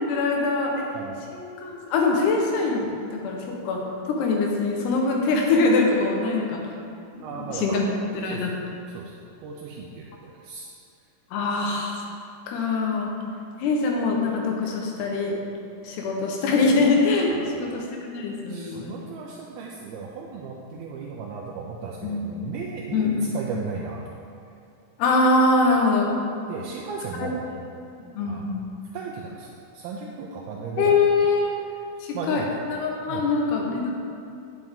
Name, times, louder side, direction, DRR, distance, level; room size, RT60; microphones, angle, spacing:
voice 1, 0.0-0.9 1.3-6.6 7.2-7.8 8.1-8.5 11.3-12.0 12.5-13.1 13.6-15.4 15.8-18.9 20.7-20.9 22.0-22.3 22.9-23.3 25.0-26.1 27.2-27.3 27.5-27.6 28.0-28.6 30.8-31.5 32.0-34.0, left 3 dB, 90° left, 0 dB, 3.1 m, -23 dB
voice 2, 7.2-7.9 8.3-8.6 8.9-10.7 17.3-17.9 18.5-24.1 26.5-27.4 28.3-28.5 28.9-31.0 32.1-32.5 33.1-33.2, right 5 dB, 80° right, -2 dB, 2.3 m, -36 dB
9.3 x 7.6 x 3.6 m, 2.6 s
omnidirectional pair, 4.5 m